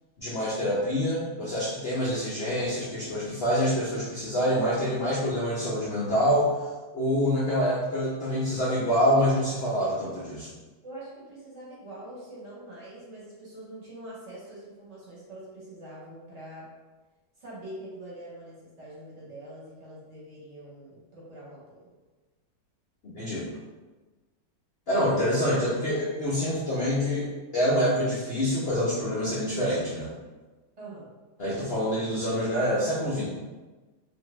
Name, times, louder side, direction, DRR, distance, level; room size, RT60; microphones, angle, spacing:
voice 1, 0.2-10.5 23.0-23.5 24.9-30.1 31.4-33.3, equal, 70° left, -7 dB, 0.5 m, -26 dB
voice 2, 10.8-16.7 17.4-21.9 30.8-31.1, right 1 dB, 50° right, -7 dB, 1.0 m, -44 dB
2.6 x 2.6 x 3.0 m, 1.2 s
omnidirectional pair, 1.8 m